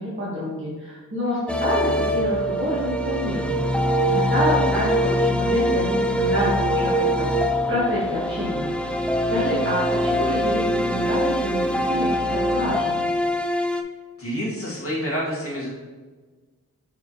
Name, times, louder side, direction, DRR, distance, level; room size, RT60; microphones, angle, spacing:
voice 1, 0.0-3.7 4.1-7.3 7.7-13.0, equal, 35° right, -8 dB, 1.8 m, -27 dB
sound 1, 1.5-13.8, equal, 5° left, 0.5 m, -23 dB
voice 2, 14.2-15.7, equal, 40° left, -7 dB, 1.9 m, -28 dB
7.1 x 4.6 x 3.2 m, 1.4 s
wide cardioid pair, 60°, 36 cm